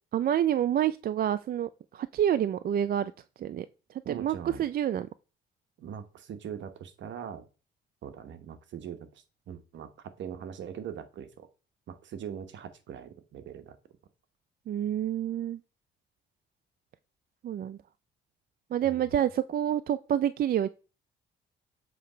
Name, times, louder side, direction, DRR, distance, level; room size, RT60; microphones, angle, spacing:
voice 1, 0.1-3.1 3.4-3.7 4.1-5.1 14.7-15.6 17.4-17.8 18.7-20.7, right 10 dB, 50° right, 0.4 m, -28 dB
voice 2, 4.0-4.7 5.8-7.5 8.0-11.5 11.9-13.8 18.8-19.2, right 8 dB, 70° right, 1.1 m, -41 dB
7.7 x 3.4 x 5.0 m
cardioid pair, 90°, 20 cm